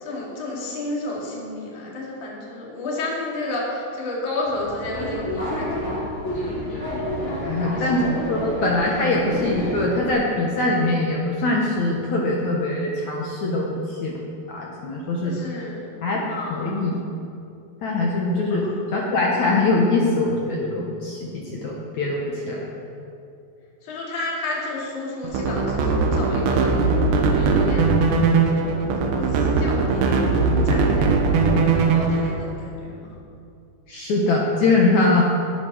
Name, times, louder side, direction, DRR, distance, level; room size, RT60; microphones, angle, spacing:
voice 1, 0.0-6.7 7.6-8.1 9.2-9.4 15.2-15.9 16.3-16.9 18.5-18.8 23.8-26.9 27.3-27.9 28.5-28.9 29.3-31.2 31.6-33.1, left 2 dB, 45° left, -4 dB, 4.0 m, -32 dB
Subway metro underground, 4.5-10.1, equal, 15° left, 3.9 m, -29 dB
voice 2, 7.4-14.2 14.5-15.4 16.0-16.2 16.5-17.0 17.8-22.6 33.9-35.2, left 2 dB, 65° left, -2 dB, 1.9 m, -22 dB
sound 1, 25.2-32.3, right 4 dB, 80° right, 3.4 m, -20 dB
19.0 x 8.6 x 6.4 m, 2.7 s
omnidirectional pair, 5.1 m